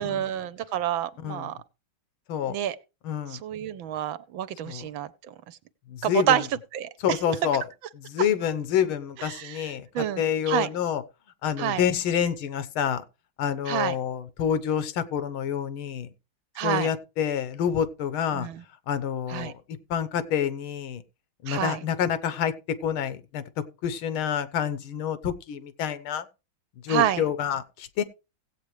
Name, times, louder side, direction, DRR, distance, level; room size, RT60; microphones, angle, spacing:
voice 1, 0.0-1.5 2.5-2.8 3.3-5.1 6.0-6.5 6.7-7.2 9.2-10.7 11.6-11.8 13.7-14.0 16.6-16.9 18.3-18.6 19.3-19.5 21.5-21.8 26.9-27.2, right 11 dB, 75° right, 1.5 m, -28 dB
voice 2, 1.2-1.6 2.3-2.6 3.0-3.4 4.6-4.8 5.9-6.4 7.0-7.6 8.0-11.0 11.4-13.0 13.4-16.1 16.6-18.5 18.9-21.0 21.4-23.4 23.8-26.3 26.8-28.0, left 8 dB, 85° left, 1.8 m, -28 dB
16.5 x 8.4 x 3.2 m
omnidirectional pair, 2.2 m